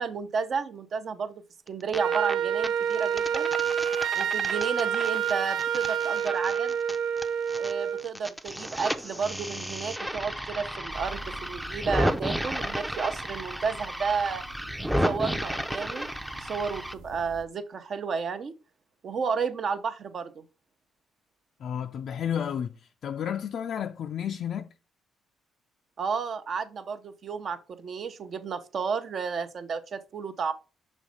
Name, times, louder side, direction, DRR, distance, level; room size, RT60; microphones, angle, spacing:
voice 1, 0.0-3.5 4.1-6.7 7.6-14.4 15.0-16.1 16.4-18.5 19.0-20.4 26.0-30.5, right 5 dB, 55° right, 0.8 m, -32 dB
sound 1, 1.7-2.3 2.6-7.7 8.0-16.9, equal, 5° right, 0.5 m, -33 dB
Wind instrument woodwind instrument, 2.0-8.1, right 8 dB, 70° right, 0.4 m, -28 dB
sound 2, 10.9-17.4, right 1 dB, 90° right, 1.2 m, -48 dB
voice 2, 21.6-22.7 23.0-24.7, left 8 dB, 65° left, 0.4 m, -31 dB
6.4 x 3.1 x 5.0 m
cardioid pair, 90°, 0 cm